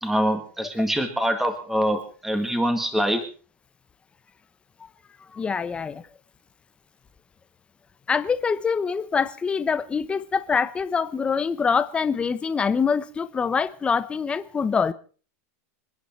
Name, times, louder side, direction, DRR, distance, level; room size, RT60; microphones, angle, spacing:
voice 1, 0.0-3.2, equal, 5° right, 1.9 m, -24 dB
voice 2, 5.3-6.0 8.1-14.9, left 5 dB, 15° left, 0.9 m, -24 dB
27.5 x 10.0 x 4.6 m
supercardioid pair, 155°, 8 cm